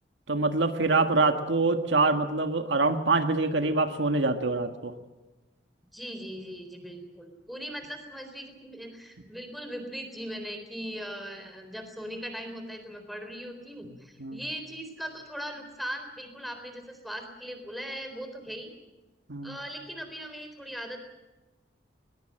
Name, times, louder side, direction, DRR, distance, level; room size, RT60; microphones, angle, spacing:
voice 1, 0.3-4.9 14.2-14.4 19.3-19.6, right 3 dB, 75° right, 6 dB, 1.7 m, -25 dB
voice 2, 5.9-18.7 19.4-21.0, equal, ahead, 6 dB, 3.9 m, -39 dB
21.5 x 21.5 x 7.7 m, 1.1 s
head